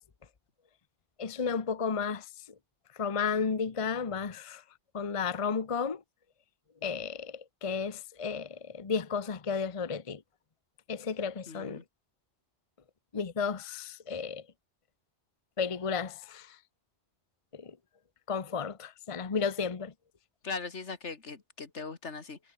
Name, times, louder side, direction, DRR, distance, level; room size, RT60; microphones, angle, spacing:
voice 1, 1.2-2.3 2.9-4.6 4.9-6.0 6.8-10.2 10.9-11.8 13.1-14.4 15.6-16.6 17.5-17.8 18.3-19.9, left 5 dB, 30° left, 0.9 m, -33 dB
voice 2, 11.5-11.8 20.4-22.4, left 4 dB, 85° left, 2.4 m, -39 dB
omnidirectional pair, 1.2 m